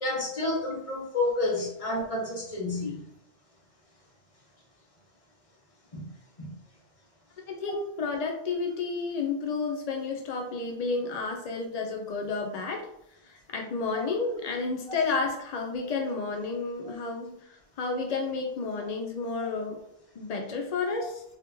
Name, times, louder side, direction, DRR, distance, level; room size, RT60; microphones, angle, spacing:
voice 1, 0.0-3.0 5.9-6.0 6.4-6.5, left 2 dB, 30° left, -3 dB, 1.2 m, -30 dB
voice 2, 7.5-12.9 13.2-19.8 20.2-21.2, left 4 dB, 65° left, 2 dB, 0.4 m, -31 dB
4.1 x 3.6 x 2.7 m, 0.74 s
omnidirectional pair, 1.3 m